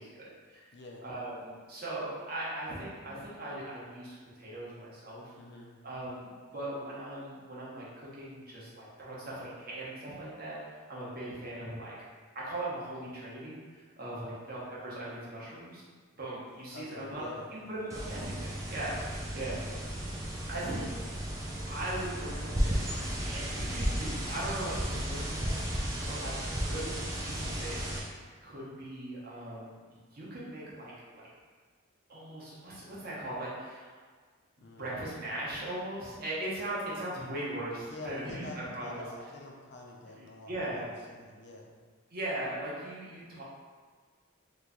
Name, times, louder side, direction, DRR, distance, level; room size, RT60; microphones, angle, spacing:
voice 1, 0.0-0.6 1.0-5.3 5.8-11.9 12.3-15.8 16.2-17.2 17.5-19.6 20.5-20.9 21.7-27.9 28.4-29.8 30.1-31.3 32.1-34.0 34.8-39.0 40.5-40.9 42.1-43.4, right 1 dB, 50° right, -7 dB, 0.9 m, -39 dB
voice 2, 0.7-1.0 5.3-5.7 14.1-14.4 16.7-17.5 22.7-23.0 26.1-26.3 34.6-34.9 37.9-41.7, left 2 dB, 55° left, -1 dB, 0.5 m, -47 dB
sound 1, 17.9-28.0, equal, 15° right, 0.4 m, -34 dB
3.0 x 2.2 x 3.7 m, 1.5 s
head